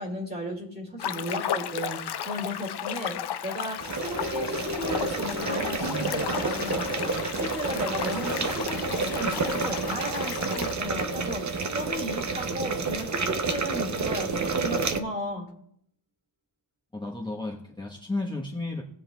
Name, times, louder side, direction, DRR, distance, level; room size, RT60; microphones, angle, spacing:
voice 1, 0.0-15.5, equal, 20° right, 2 dB, 2.1 m, -35 dB
sound 1, 1.0-10.7, left 9 dB, 60° left, 0.6 m, -34 dB
sound 2, 3.8-15.0, right 4 dB, 40° right, 0.7 m, -30 dB
sound 3, 4.0-12.4 12.7-12.8, left 2 dB, 70° right, 3.4 m, -42 dB
voice 2, 16.9-18.8, left 2 dB, 10° left, -4 dB, 1.0 m, -33 dB
18.5 x 7.5 x 2.2 m, 0.69 s
wide cardioid pair, 135°, 45 cm